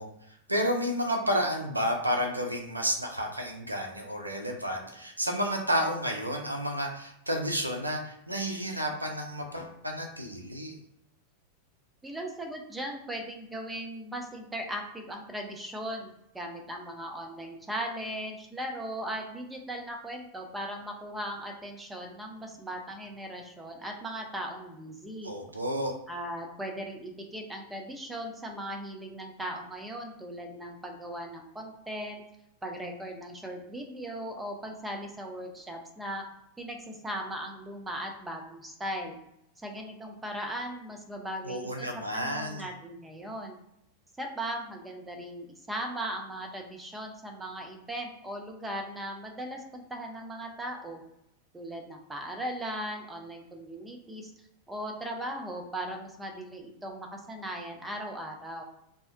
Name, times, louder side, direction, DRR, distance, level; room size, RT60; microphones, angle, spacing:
voice 1, 0.0-10.8 25.2-25.9 41.4-42.7, equal, 85° right, 2 dB, 0.4 m, -31 dB
voice 2, 12.0-25.3 26.1-32.2 32.6-36.2 36.6-39.2 39.6-43.6 44.2-51.0 51.5-54.3 54.7-58.6, right 1 dB, 10° right, 2 dB, 0.5 m, -38 dB
3.4 x 2.0 x 2.5 m, 0.81 s
figure-of-eight pair, 90°, 0 cm